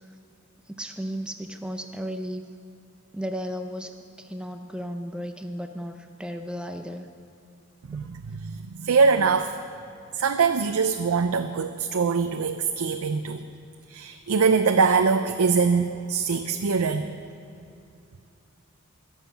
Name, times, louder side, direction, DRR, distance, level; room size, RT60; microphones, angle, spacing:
voice 1, 0.7-2.4 3.1-3.9 4.2-7.1, equal, 5° right, 6 dB, 0.5 m, -34 dB
voice 2, 7.9-9.5 10.1-13.4 13.9-17.1, right 5 dB, 85° right, 7 dB, 0.5 m, -23 dB
21.5 x 7.3 x 5.8 m, 2.6 s
head